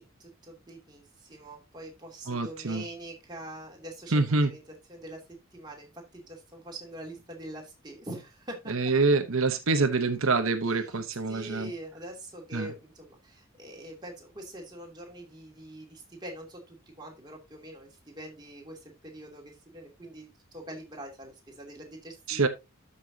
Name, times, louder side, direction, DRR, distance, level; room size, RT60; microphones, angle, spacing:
voice 1, 0.2-4.6 4.9-5.2 5.5-8.7 10.7-11.0 11.3-22.5, right 1 dB, 20° right, 2.6 m, -44 dB
voice 2, 2.3-2.8 4.1-4.5 8.7-11.7 12.5-12.7 22.3-22.5, right 3 dB, 75° right, 0.9 m, -26 dB
13.0 x 5.7 x 2.8 m
head